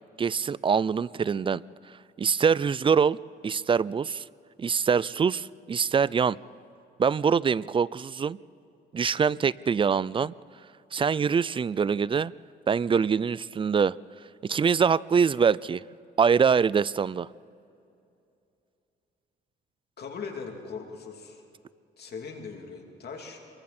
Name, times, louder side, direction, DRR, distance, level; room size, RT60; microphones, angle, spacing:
voice 1, 0.2-1.6 2.2-3.2 3.4-4.2 4.6-6.4 7.0-8.4 8.9-10.3 10.9-12.3 12.7-14.0 14.4-15.8 16.2-17.3, right 6 dB, 25° right, 21 dB, 0.4 m, -24 dB
voice 2, 20.0-21.4 22.0-23.4, left 5 dB, 55° left, 2 dB, 3.0 m, -39 dB
27.5 x 23.5 x 4.3 m, 2.6 s
cardioid pair, 90°, 20 cm